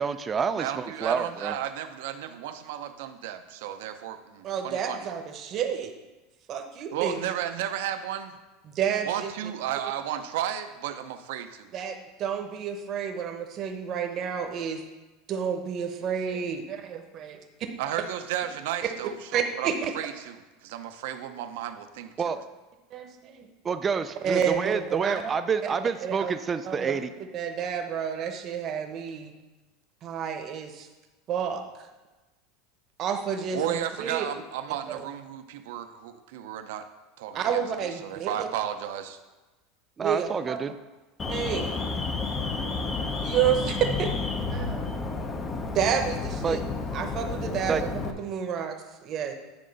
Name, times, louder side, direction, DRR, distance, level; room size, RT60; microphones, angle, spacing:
voice 1, 0.0-1.6 22.2-22.4 23.6-27.1 40.0-40.7 46.4-46.6 47.7-47.8, right 6 dB, 20° right, 10 dB, 0.4 m, -28 dB
voice 2, 0.6-5.0 6.9-8.4 9.0-11.7 17.8-20.4 20.6-22.3 33.5-36.9 37.2-37.6 38.0-39.2, right 10 dB, 75° right, 8 dB, 0.7 m, -33 dB
voice 3, 4.4-5.9 6.5-7.2 8.7-9.3 11.7-14.8 15.3-17.4 19.3-19.9 22.9-23.5 24.2-25.1 26.0-26.3 26.6-27.0 27.3-29.3 30.0-30.9 31.3-31.9 33.0-34.3 37.3-38.5 40.0-40.6 41.3-41.8 42.8-42.9 43.2-44.1 44.5-45.1 45.7-46.6 46.9-48.8 49.0-49.3, right 8 dB, 35° right, 5 dB, 0.9 m, -30 dB
Alarm, 41.2-48.1, left 4 dB, 20° left, 0.6 m, -31 dB
9.7 x 3.8 x 5.3 m, 1.1 s
supercardioid pair, 150°, 0 cm